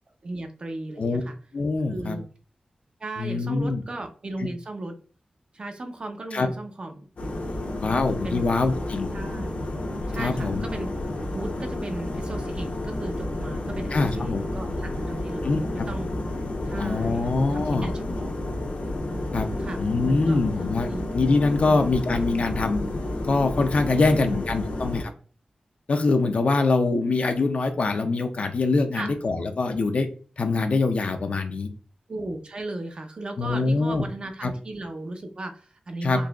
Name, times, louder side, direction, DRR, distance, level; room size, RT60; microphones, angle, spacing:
voice 1, 0.2-1.4 1.9-2.2 3.0-5.0 5.5-8.5 8.8-8.9 9.1-9.6 10.1-10.9 11.3-16.1 16.7-18.5 19.6-20.4 20.9-21.1 23.9-24.4 28.9-29.5 32.1-36.3, right 2 dB, 45° right, 5 dB, 0.6 m, -36 dB
voice 2, 1.5-2.2 3.2-3.8 6.3-6.5 7.8-9.1 10.2-10.6 13.9-14.4 15.4-15.9 16.8-18.2 19.3-19.5 19.8-22.8 23.2-25.1 25.9-30.1 30.4-31.7 33.4-34.0 34.4-34.5 36.0-36.2, left 3 dB, 60° left, 7 dB, 0.5 m, -24 dB
sound 1, 7.2-25.0, left 1 dB, 80° left, 0.8 m, -31 dB
3.9 x 2.7 x 2.3 m, 0.41 s
wide cardioid pair, 130°, 2 cm